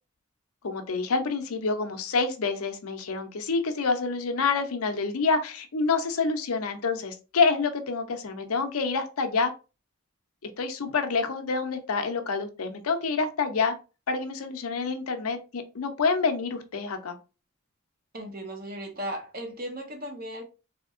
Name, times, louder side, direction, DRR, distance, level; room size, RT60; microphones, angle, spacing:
voice 1, 0.6-9.5 10.6-13.7 14.1-17.2, left 4 dB, 80° left, 0.6 m, -27 dB
voice 2, 18.1-20.4, equal, 40° right, 0.8 m, -36 dB
3.5 x 2.8 x 2.4 m
head